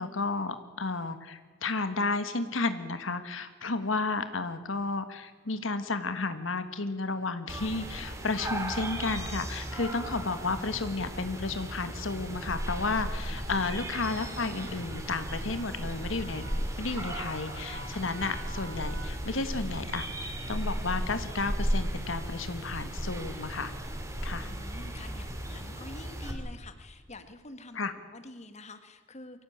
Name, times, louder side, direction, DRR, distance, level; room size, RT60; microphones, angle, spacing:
voice 1, 0.0-16.4 16.8-23.7 24.2-24.5 27.7-27.9, left 3 dB, 85° left, 10 dB, 1.5 m, -32 dB
sound 1, 1.0-1.4 2.2-2.6 2.9-3.1 3.3-19.1, right 2 dB, 85° right, 4.7 m, -53 dB
sound 2, 7.5-26.3, right 1 dB, 15° right, 3.1 m, -36 dB
voice 2, 13.3-13.6 24.4-29.4, left 2 dB, 35° left, 9 dB, 1.8 m, -47 dB
23.5 x 16.5 x 8.7 m, 1.4 s
head